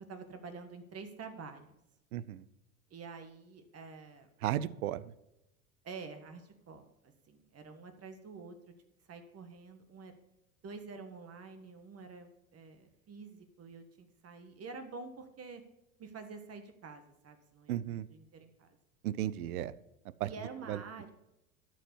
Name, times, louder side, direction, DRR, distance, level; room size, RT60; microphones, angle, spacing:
voice 1, 0.1-1.7 2.9-4.3 5.8-8.5 9.1-10.2 10.6-15.6 16.0-18.7 20.2-21.1, right 4 dB, 35° right, 7 dB, 1.6 m, -48 dB
voice 2, 2.1-2.4 4.4-5.0 17.7-18.0 19.0-19.7 20.2-20.3 20.7-20.8, right 12 dB, 80° right, 18 dB, 0.7 m, -34 dB
13.0 x 4.7 x 6.9 m, 0.88 s
hypercardioid pair, 85°, 43 cm